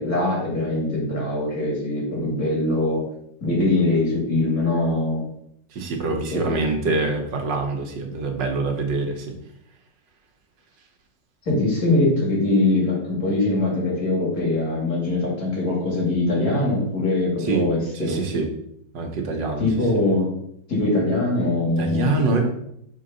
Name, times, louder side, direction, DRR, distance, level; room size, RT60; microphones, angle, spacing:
voice 1, 0.0-3.0 3.4-5.2 6.3-6.5 11.5-18.2 19.6-20.3 20.7-22.5, left 2 dB, 55° left, -4 dB, 3.0 m, -22 dB
voice 2, 5.7-9.3 17.4-17.7 17.9-18.5 18.9-19.7 21.8-22.5, right 3 dB, 85° right, 3 dB, 1.8 m, -25 dB
6.5 x 3.8 x 5.4 m, 0.72 s
omnidirectional pair, 1.9 m